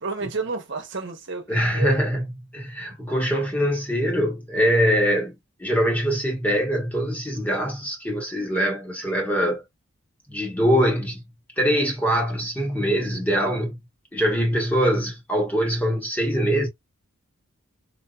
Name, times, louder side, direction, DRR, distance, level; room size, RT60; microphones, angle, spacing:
voice 1, 0.0-2.0 2.9-3.0, right 3 dB, 55° right, 1.1 m, -31 dB
voice 2, 1.5-2.2 2.5-9.6 10.3-11.2 11.6-13.8 14.1-16.7, equal, 5° left, 1.0 m, -23 dB
3.7 x 2.7 x 2.3 m
head